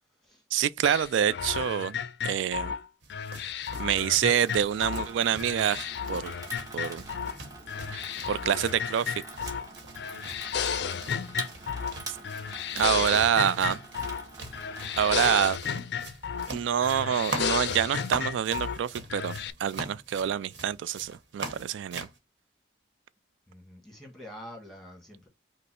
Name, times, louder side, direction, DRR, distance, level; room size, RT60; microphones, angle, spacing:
voice 1, 0.5-2.7 3.8-6.3 6.7-7.1 7.9-9.2 12.1-12.2 12.8-13.8 15.0-15.6 16.5-22.1, right 9 dB, 90° right, 0.3 m, -27 dB
sound 1, 0.8-5.1 5.4-7.4 7.7-9.7 10.0-12.0 12.2-14.3 14.5-16.5 16.8-18.8 19.1-19.5, left 7 dB, 65° left, 0.4 m, -33 dB
sound 2, 3.0-22.2, right 2 dB, 75° right, 1.1 m, -43 dB
Water tap faucet / Sink (filling or washing), 4.4-15.6, right 3 dB, 20° right, 0.9 m, -45 dB
voice 2, 10.8-11.4 23.5-25.3, equal, ahead, 1.5 m, -47 dB
5.3 x 2.0 x 4.2 m
head